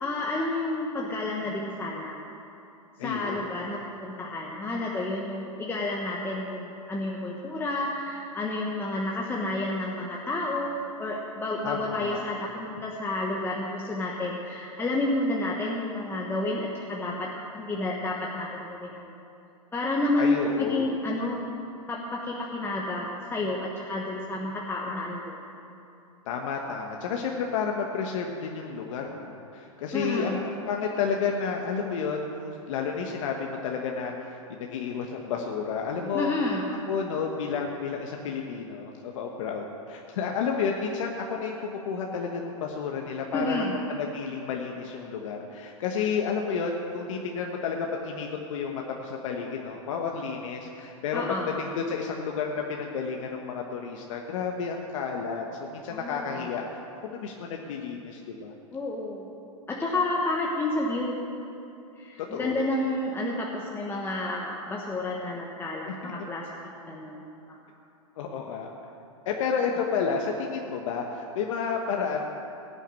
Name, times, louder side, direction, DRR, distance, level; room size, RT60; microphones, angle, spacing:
voice 1, 0.0-2.2 3.0-19.1 19.7-21.4 21.9-25.4 29.9-30.4 36.1-36.7 43.3-43.7 51.1-51.5 55.9-56.5 58.7-59.3 59.7-61.2 62.0-66.5 66.9-67.6, left 2 dB, 10° left, -2 dB, 1.3 m, -30 dB
voice 2, 3.0-3.4 11.6-12.2 20.2-20.9 26.2-36.3 36.9-43.7 43.9-55.4 55.7-58.5 62.3-62.6 65.9-66.1 68.2-68.7 69.2-72.3, left 6 dB, 65° left, 1 dB, 1.3 m, -31 dB
17.0 x 6.5 x 9.0 m, 2.8 s
hypercardioid pair, 120°, 18 cm